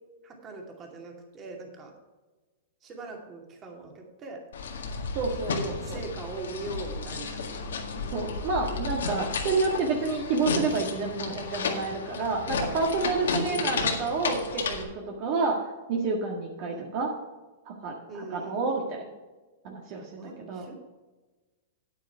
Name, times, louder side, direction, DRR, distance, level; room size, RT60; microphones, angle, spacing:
voice 1, 0.2-1.9 2.8-4.4 5.8-7.6 13.4-13.9 16.7-16.9 18.1-18.7 19.9-20.8, right 3 dB, 25° right, 1 dB, 2.4 m, -41 dB
sound 1, 4.5-14.8, left 4 dB, 90° left, 1.8 m, -32 dB
voice 2, 5.1-6.0 8.1-17.1 17.6-19.1 19.6-20.7, right 3 dB, 50° right, 0 dB, 1.7 m, -29 dB
9.3 x 8.9 x 4.6 m, 1.2 s
hypercardioid pair, 135°, 0 cm